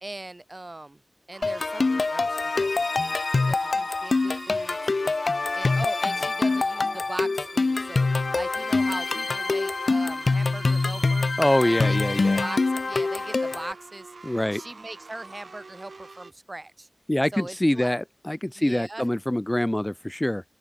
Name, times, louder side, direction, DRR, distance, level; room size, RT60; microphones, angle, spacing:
voice 1, 0.0-1.0 1.3-4.8 5.5-8.1 8.3-11.3 11.6-12.0 12.3-14.1 14.5-16.9 17.3-17.9 18.5-19.1, right 2 dB, 40° right, 1.6 m, -39 dB
sound 1, 1.3-16.3, right 3 dB, 85° right, 2.4 m, -45 dB
sound 2, 1.4-13.7, left 3 dB, 80° left, 0.4 m, -25 dB
voice 2, 11.4-12.4 14.2-14.6 17.1-20.4, left 1 dB, 20° left, 0.3 m, -24 dB
open air
wide cardioid pair, 60°, 0 cm